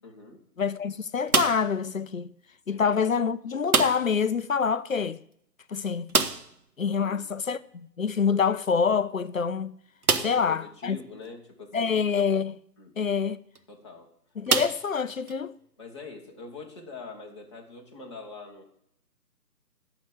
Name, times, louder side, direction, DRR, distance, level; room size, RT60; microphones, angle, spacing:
voice 1, 0.0-0.4 2.7-2.8 6.9-7.2 10.1-12.0 12.8-12.9 13.7-14.1 15.8-18.6, left 4 dB, 15° left, 1.2 m, -43 dB
voice 2, 0.6-2.3 2.7-5.2 5.7-6.1 6.8-9.8 10.2-11.0 11.7-12.6 13.0-13.4 14.4-15.5, left 6 dB, 55° left, 0.6 m, -26 dB
sound 1, 1.3-1.8 3.7-4.2 4.5-4.6 4.9-5.0 6.1-6.6 8.4-8.5 9.1-9.2 10.0-10.5 11.3-11.4 13.4-13.6 14.5-15.4, right 4 dB, 60° right, 1.1 m, -26 dB
13.0 x 5.8 x 7.4 m
figure-of-eight pair, 155°, 49 cm